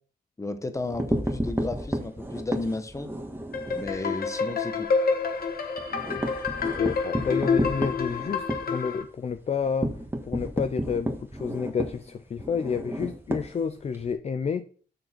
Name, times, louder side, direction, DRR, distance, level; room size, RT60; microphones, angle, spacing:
voice 1, 0.4-3.1 3.7-4.9, left 2 dB, 20° left, 1.1 m, -33 dB
sound 1, 0.8-4.0 4.3-4.5 4.8-4.9 5.3-14.1, right 1 dB, 10° right, 1.5 m, -32 dB
sound 2, 3.5-9.0, left 5 dB, 60° left, 1.3 m, -28 dB
voice 2, 6.8-14.7, left 6 dB, 40° left, 0.5 m, -30 dB
6.6 x 6.5 x 4.4 m
cardioid pair, 105°, 17 cm